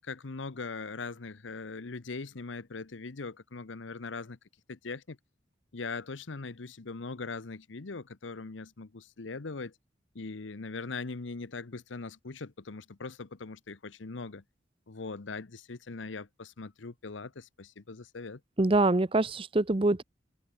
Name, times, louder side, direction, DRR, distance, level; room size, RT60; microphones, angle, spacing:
voice 1, 0.0-4.4 4.7-5.2 5.7-9.7 10.1-14.4 14.9-18.4, left 4 dB, 80° left, 0.9 m, -40 dB
voice 2, 18.6-20.0, right 2 dB, 30° right, 0.7 m, -24 dB
head